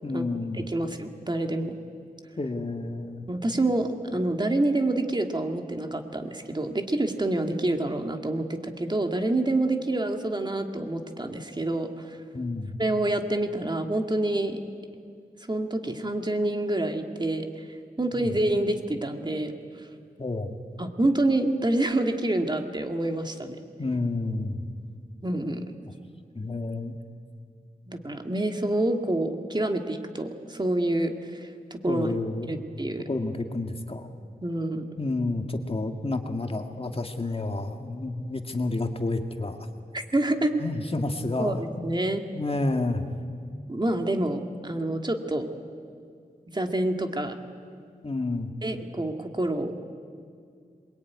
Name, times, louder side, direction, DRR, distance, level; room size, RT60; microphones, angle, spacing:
voice 1, 0.0-0.7 2.4-3.2 12.3-12.8 18.1-18.3 20.2-20.6 23.8-24.7 26.3-27.0 31.9-32.6 33.1-34.1 35.0-39.6 40.6-41.9 42.4-43.0 48.0-48.5, left 2 dB, 35° left, 5 dB, 2.0 m, -30 dB
voice 2, 0.5-1.7 3.3-12.2 12.8-14.6 15.5-17.7 18.0-19.9 20.8-23.6 25.2-25.7 27.9-32.1 32.4-33.0 34.4-34.9 39.9-40.6 41.4-42.2 43.7-45.5 46.5-47.4 48.6-49.8, right 1 dB, 30° right, 5 dB, 2.1 m, -27 dB
27.0 x 22.5 x 9.5 m, 2.2 s
wide cardioid pair, 95°, 16 cm